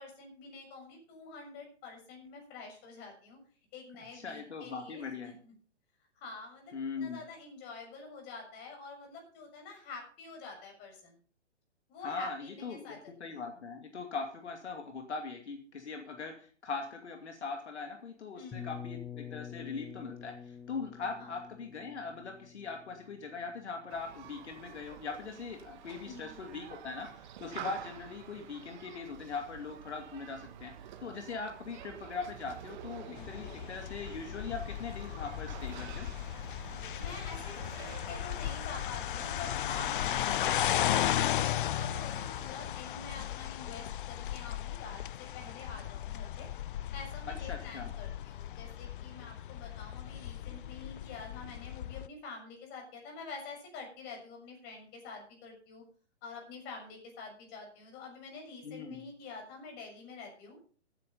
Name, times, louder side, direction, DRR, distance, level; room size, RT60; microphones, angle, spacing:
voice 1, 0.0-3.4 3.7-5.5 6.1-11.2 11.9-13.4 18.3-18.7 21.2-21.3 26.0-26.4 33.0-33.4 37.0-46.5 46.9-55.8 56.2-60.6, left 4 dB, 30° left, 2 dB, 6.5 m, -47 dB
voice 2, 4.1-5.3 6.7-7.2 12.0-30.7 31.0-36.1 47.4-47.9 58.6-58.9, left 4 dB, 70° left, 4 dB, 2.6 m, -41 dB
sound 1, 18.5-24.3, left 8 dB, 10° left, 1.2 m, -47 dB
Human group actions, 23.9-42.5, right 10 dB, 40° right, 1.8 m, -49 dB
sound 2, 33.2-52.1, left 12 dB, 50° left, 0.5 m, -36 dB
15.0 x 9.8 x 5.4 m, 0.43 s
hypercardioid pair, 130°, 35 cm